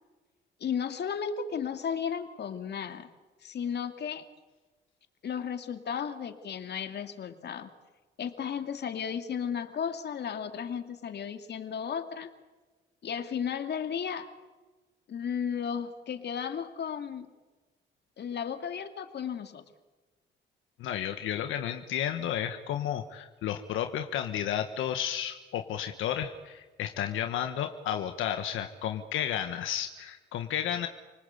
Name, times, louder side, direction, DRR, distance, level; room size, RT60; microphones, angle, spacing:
voice 1, 0.6-3.1 3.4-4.2 5.2-7.7 8.2-12.3 13.0-14.3 15.1-17.3 18.2-19.6, left 7 dB, 55° left, 7 dB, 2.6 m, -34 dB
voice 2, 20.8-30.9, left 10 dB, 85° left, 6 dB, 1.5 m, -32 dB
29.0 x 19.5 x 8.3 m, 1.2 s
cardioid pair, 90°, 20 cm